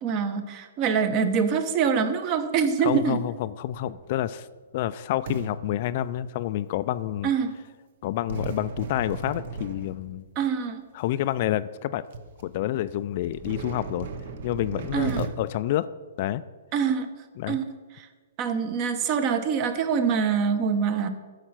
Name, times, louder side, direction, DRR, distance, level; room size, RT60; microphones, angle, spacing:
voice 1, 0.0-3.2 7.2-7.5 10.4-10.9 14.9-15.2 16.7-17.1 17.5-17.7 18.0-18.1 18.4-21.1, right 6 dB, 35° right, 10 dB, 0.9 m, -25 dB
voice 2, 2.8-4.5 4.7-7.3 8.0-10.2 10.9-12.0 12.4-14.1 14.4-15.9 16.2-16.4 17.4-17.6, left 13 dB, 45° left, 14 dB, 0.3 m, -28 dB
sound 1, 3.7-4.4 5.3-6.5 8.3-10.4 11.2-11.3 11.8-11.9 12.1-12.5 13.2-15.3, right 4 dB, 55° right, 0.9 m, -36 dB
9.9 x 6.5 x 5.9 m, 1.4 s
hypercardioid pair, 140°, 0 cm